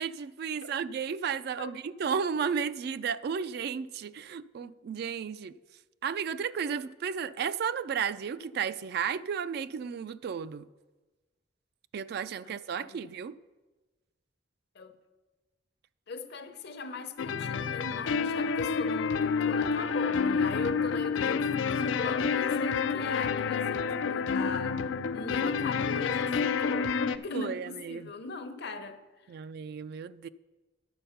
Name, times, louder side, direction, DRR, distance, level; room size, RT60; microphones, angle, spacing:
voice 1, 0.0-5.5 6.0-10.7 11.9-13.3 27.3-28.1 29.3-30.3, right 7 dB, 60° right, 0.3 m, -33 dB
voice 2, 12.4-13.0 14.7-14.9 16.1-29.0, left 4 dB, 60° left, 0.8 m, -39 dB
sound 1, 17.2-27.2, left 5 dB, 85° left, 0.4 m, -29 dB
9.9 x 6.8 x 5.7 m
head